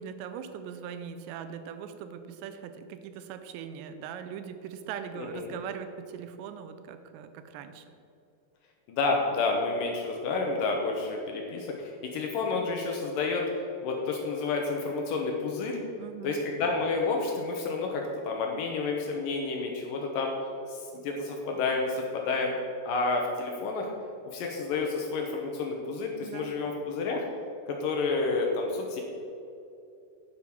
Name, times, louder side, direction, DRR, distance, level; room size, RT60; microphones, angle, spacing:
voice 1, 0.0-7.9 16.0-16.4 26.2-26.5, right 8 dB, 90° right, 9 dB, 2.9 m, -40 dB
voice 2, 5.2-5.5 8.9-13.5 13.8-15.8 16.2-20.3 20.7-22.5 22.9-23.9 24.3-27.3 27.7-29.0, left 3 dB, 70° left, 1 dB, 2.1 m, -30 dB
9.5 x 7.4 x 6.0 m, 2.7 s
omnidirectional pair, 5.0 m